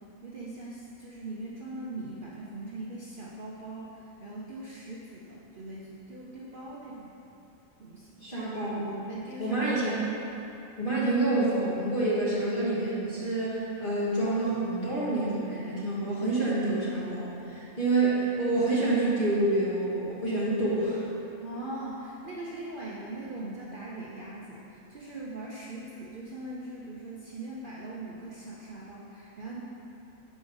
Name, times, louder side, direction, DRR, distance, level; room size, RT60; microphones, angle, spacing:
voice 1, 0.2-7.1 7.8-8.2 9.1-9.8 21.4-29.6, right 2 dB, 50° right, -6 dB, 0.8 m, -41 dB
voice 2, 8.2-9.1 9.4-10.1 10.8-21.0, right 2 dB, 40° left, -8 dB, 1.8 m, -27 dB
6.4 x 4.9 x 5.3 m, 2.8 s
omnidirectional pair, 1.4 m